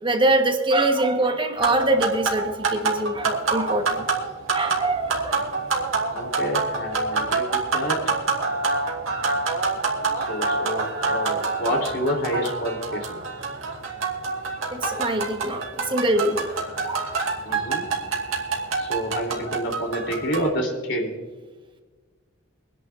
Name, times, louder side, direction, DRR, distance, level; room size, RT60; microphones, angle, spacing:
voice 1, 0.0-4.0 4.5-5.5 14.7-16.5 16.8-17.1, right 2 dB, 25° right, 4 dB, 1.2 m, -23 dB
sound 1, 1.6-20.5, right 4 dB, 85° right, 2.4 m, -27 dB
voice 2, 6.1-8.0 10.2-13.2 16.7-16.9 17.4-17.8 18.8-21.1, equal, 60° left, 2 dB, 3.2 m, -28 dB
25.0 x 10.5 x 2.5 m, 1.3 s
head